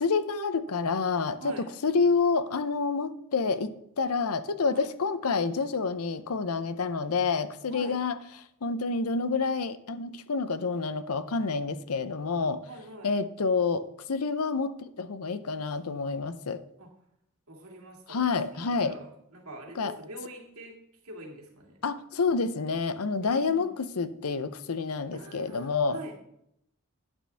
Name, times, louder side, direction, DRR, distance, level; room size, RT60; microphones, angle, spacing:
voice 1, 0.0-1.5 1.8-3.7 4.0-8.2 8.6-12.6 13.0-13.8 14.1-16.6 18.1-18.9 19.8-19.9 21.8-26.0, left 4 dB, 75° left, 13 dB, 0.7 m, -28 dB
voice 2, 12.7-13.1 16.8-16.9 17.5-20.7 21.0-21.8 23.2-23.7 25.1-26.2, right 1 dB, 70° right, 0 dB, 2.4 m, -44 dB
11.5 x 8.9 x 3.4 m, 0.75 s
head